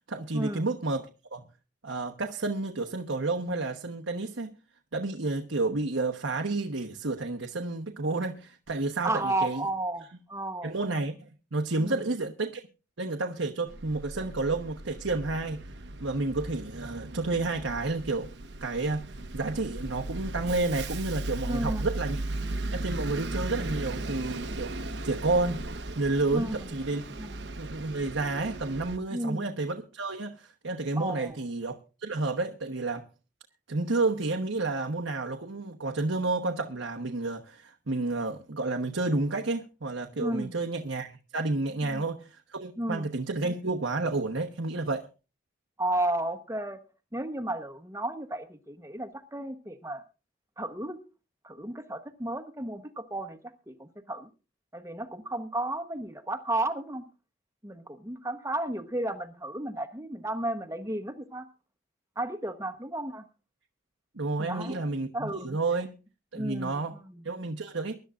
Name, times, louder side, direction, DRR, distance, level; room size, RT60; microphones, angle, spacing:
voice 1, 0.1-1.4 1.8-4.5 4.9-9.7 10.6-12.6 13.0-15.6 16.0-18.3 18.6-19.1 19.3-22.2 22.7-24.7 25.0-25.6 26.0-27.0 27.6-33.0 33.7-45.1 64.1-65.9 66.3-67.0 67.2-67.9, right 3 dB, 90° right, 1.2 m, -30 dB
voice 2, 9.0-10.7 11.8-12.1 21.4-21.9 26.3-26.6 27.1-27.4 29.1-29.5 31.0-31.4 40.2-40.6 41.8-42.1 42.8-43.1 45.8-46.8 47.1-50.0 50.6-51.0 51.4-53.4 53.7-54.3 54.7-57.0 57.6-61.5 62.2-63.2 64.4-65.6 66.3-67.2, right 1 dB, 15° right, 1.0 m, -33 dB
Bus, 13.7-29.0, right 2 dB, 65° right, 1.0 m, -37 dB
24.0 x 12.0 x 2.5 m
head